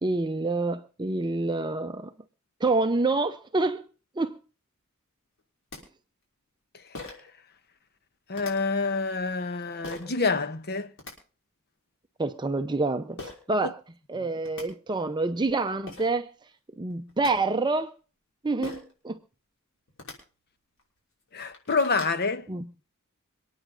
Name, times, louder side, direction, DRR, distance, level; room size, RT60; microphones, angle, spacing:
voice 1, 0.0-2.1 2.6-3.9 4.2-4.4 12.2-13.8 14.1-16.3 16.8-17.9 18.4-19.2 22.5-22.7, right 3 dB, 20° right, 0.6 m, -27 dB
sound 1, 5.4-5.5 5.7-5.8 6.9-7.3 8.3-8.5 9.8-10.1 10.8-11.1 13.2-13.4 14.1-14.2 14.4-14.7 15.5-15.6 15.9-16.1 16.9-17.3 18.6-18.9 19.9-20.2 20.8-20.9 21.3-22.2, left 2 dB, 65° left, 6.0 m, -40 dB
voice 2, 8.3-10.9 21.3-22.5, left 4 dB, 50° left, 1.1 m, -27 dB
26.5 x 9.3 x 3.9 m
head